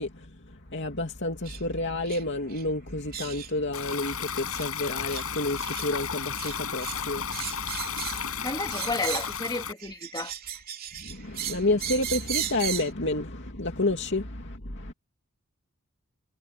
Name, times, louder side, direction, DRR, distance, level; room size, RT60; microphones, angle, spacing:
voice 1, 0.0-8.5 11.0-14.9, left 2 dB, 55° left, 2.8 m, -30 dB
sound 1, 1.4-1.6 2.0-2.2 2.5-2.6 3.1-3.5 3.9-4.1 4.5-4.7 5.1-5.3 5.6-5.9 6.4-7.0 7.3-8.3 8.7-9.4 9.8-12.9, right 10 dB, 45° right, 3.1 m, -36 dB
Stream, 3.7-9.7, left 7 dB, 80° left, 6.5 m, -33 dB
voice 2, 8.4-10.3, left 2 dB, 20° left, 2.4 m, -32 dB
head